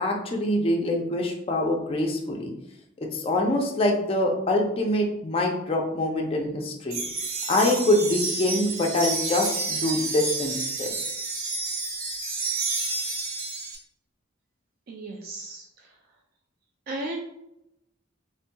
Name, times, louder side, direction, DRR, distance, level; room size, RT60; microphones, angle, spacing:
voice 1, 0.0-2.5 3.0-7.0 7.5-11.0, left 1 dB, 25° left, 1 dB, 0.4 m, -25 dB
sound 1, 6.9-13.8, right 3 dB, 80° right, 0.8 m, -30 dB
voice 2, 14.9-15.7 16.9-17.2, right 2 dB, 45° right, 0 dB, 0.3 m, -34 dB
3.5 x 2.7 x 2.2 m, 0.83 s
head